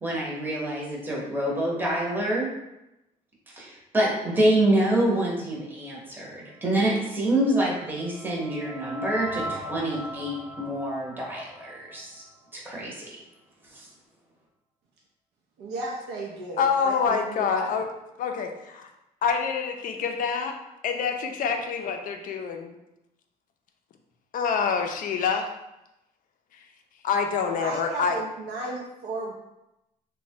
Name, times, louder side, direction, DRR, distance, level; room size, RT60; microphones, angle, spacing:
voice 1, 0.0-2.5 3.6-12.2 12.5-13.2, right 1 dB, 10° right, -4 dB, 0.8 m, -26 dB
sound 1, 7.3-12.5, right 1 dB, 45° right, 0.8 m, -39 dB
voice 2, 15.6-17.7 27.6-29.3, right 2 dB, 75° right, -3 dB, 0.5 m, -34 dB
voice 3, 16.6-17.9 18.2-18.9 19.2-20.5 20.8-22.8 24.3-25.5 27.0-28.2, left 6 dB, 55° left, 5 dB, 0.4 m, -26 dB
3.0 x 2.2 x 2.7 m, 0.90 s
cardioid pair, 110°, 17 cm